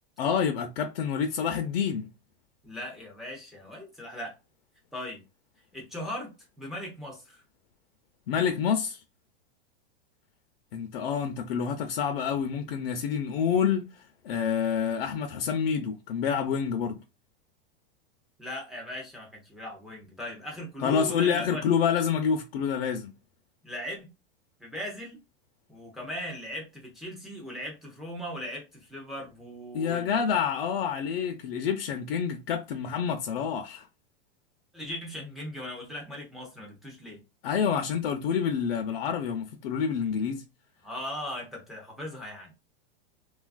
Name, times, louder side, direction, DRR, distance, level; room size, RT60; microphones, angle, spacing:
voice 1, 0.2-2.1 8.3-9.0 10.7-13.9 14.2-17.0 20.8-23.1 29.7-33.9 37.4-40.4, left 7 dB, 70° left, 0.5 m, -28 dB
voice 2, 2.6-4.3 4.9-5.2 5.7-6.3 6.6-7.4 18.4-21.6 23.6-24.1 24.6-25.2 25.7-30.1 34.7-37.2 40.8-42.5, left 1 dB, ahead, 0.4 m, -38 dB
3.1 x 2.4 x 2.3 m
supercardioid pair, 160°, 30 cm